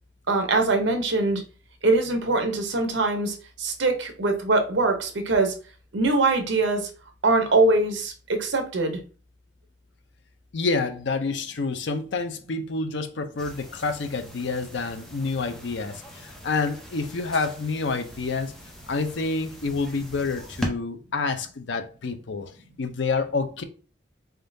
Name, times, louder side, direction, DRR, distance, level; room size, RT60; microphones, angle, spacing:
voice 1, 0.3-1.4 1.8-5.5 5.9-6.9 7.2-9.0, right 2 dB, 70° right, 0.8 m, -23 dB
voice 2, 10.5-18.5 18.9-22.5 22.8-23.6, left 4 dB, 65° left, 0.5 m, -28 dB
sound 1, 13.4-20.7, equal, 5° left, 0.7 m, -40 dB
3.8 x 3.6 x 2.6 m
head